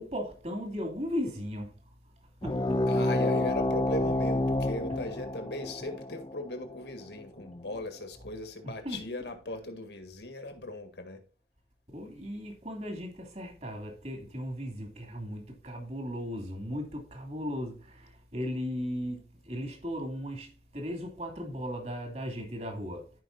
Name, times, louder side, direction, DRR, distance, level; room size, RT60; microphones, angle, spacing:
voice 1, 0.0-1.7 2.4-2.9 8.6-9.1 11.9-23.1, equal, 40° right, 2.7 m, -37 dB
sound 1, 2.4-7.5, left 1 dB, 25° left, 0.6 m, -29 dB
voice 2, 2.9-11.2, left 1 dB, 70° left, 1.8 m, -38 dB
14.0 x 5.2 x 2.6 m
head